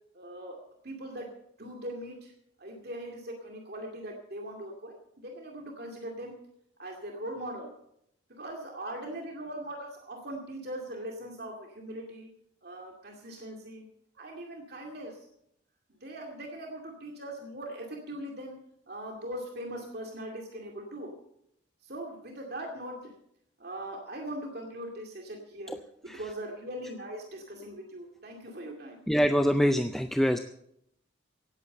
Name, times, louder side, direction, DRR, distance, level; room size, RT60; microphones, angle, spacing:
voice 1, 0.1-0.6 0.8-1.3 1.6-2.3 2.6-5.0 5.2-6.3 6.8-7.7 8.3-12.3 12.6-13.8 14.1-15.3 16.0-18.5 18.9-21.1 21.8-23.1 23.6-25.8 26.0-29.0, right 1 dB, 50° right, 1 dB, 2.3 m, -40 dB
voice 2, 29.1-30.4, equal, ahead, 7 dB, 0.4 m, -24 dB
17.0 x 8.6 x 6.6 m, 0.75 s
head